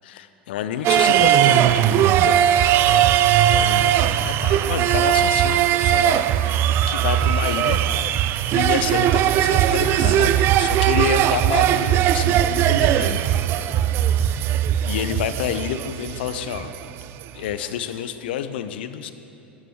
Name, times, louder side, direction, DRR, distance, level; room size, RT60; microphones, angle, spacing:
voice 1, 0.1-2.4 2.9-7.8 8.5-13.2 14.8-16.7 17.3-19.1, left 9 dB, 65° left, 11 dB, 0.6 m, -29 dB
sound 1, 0.8-17.2 17.5-17.6, right 11 dB, 40° right, 0.3 m, -19 dB
13.5 x 9.9 x 3.6 m, 2.9 s
hypercardioid pair, 85°, 6 cm